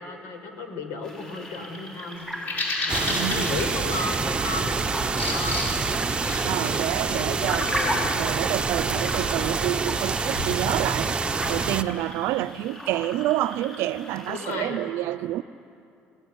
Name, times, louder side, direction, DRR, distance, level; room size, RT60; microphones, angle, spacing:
voice 1, 0.0-2.3 2.8-4.8 5.2-5.7 6.4-6.8 7.1-8.1 14.3-14.8, left 3 dB, 80° left, 4.7 m, -34 dB
sound 1, 1.0-14.6, equal, 15° left, 6.4 m, -37 dB
Bird vocalization bird call bird song, 2.2-11.6, left 2 dB, 45° left, 7.3 m, -35 dB
sound 2, 2.9-11.8, right 4 dB, 20° right, 0.9 m, -27 dB
voice 2, 3.1-3.6 6.4-7.7 8.1-11.2 11.5-15.4, right 15 dB, 80° right, 0.6 m, -28 dB
25.5 x 18.5 x 9.9 m
cardioid pair, 110°, 4 cm